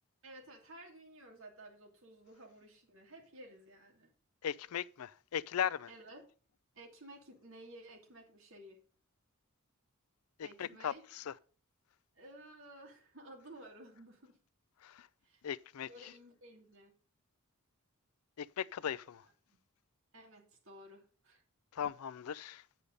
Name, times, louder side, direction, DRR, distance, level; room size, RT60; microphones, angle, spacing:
voice 1, 0.2-4.1 5.9-6.2 6.7-8.8 10.4-11.0 12.2-14.4 15.2-15.4 15.8-16.9 19.2-19.6 20.1-21.4, right 1 dB, 60° right, 2.6 m, -54 dB
voice 2, 4.4-5.9 10.4-11.3 14.8-15.1 15.4-16.1 18.4-19.2 21.7-22.6, left 8 dB, 80° left, 0.4 m, -38 dB
8.5 x 6.6 x 5.3 m
head